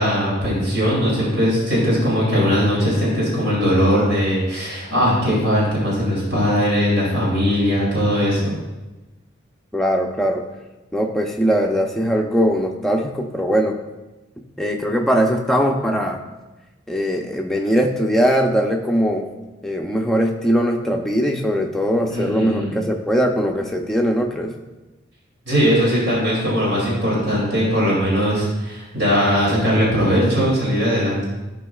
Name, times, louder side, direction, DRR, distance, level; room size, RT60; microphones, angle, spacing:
voice 1, 0.0-8.5 22.1-22.8 25.4-31.3, equal, 65° right, -5 dB, 2.8 m, -19 dB
voice 2, 9.7-10.4 10.9-13.8 14.6-16.2 16.9-19.3 19.6-24.5, equal, ahead, 0 dB, 0.6 m, -20 dB
14.0 x 5.2 x 2.4 m, 1.1 s
head